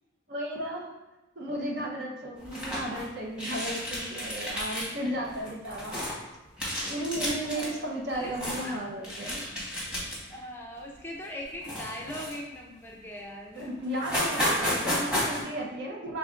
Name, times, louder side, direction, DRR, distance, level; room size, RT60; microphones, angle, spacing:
voice 1, 0.3-0.9 1.4-6.0 6.9-9.4 13.6-16.2, right 1 dB, 55° right, -1 dB, 0.9 m, -34 dB
sound 1, 2.4-3.0 3.4-4.9 5.2-6.2 6.6-7.7 8.1-8.7 9.0-10.3 10.8-11.0 11.6-12.6 13.2-13.3 13.6-13.7 13.9-15.4, equal, 5° right, 1.2 m, -32 dB
voice 2, 7.5-8.8 10.3-13.7 14.7-14.8, left 1 dB, 10° left, -1 dB, 0.5 m, -41 dB
5.9 x 3.5 x 2.5 m, 1.0 s
head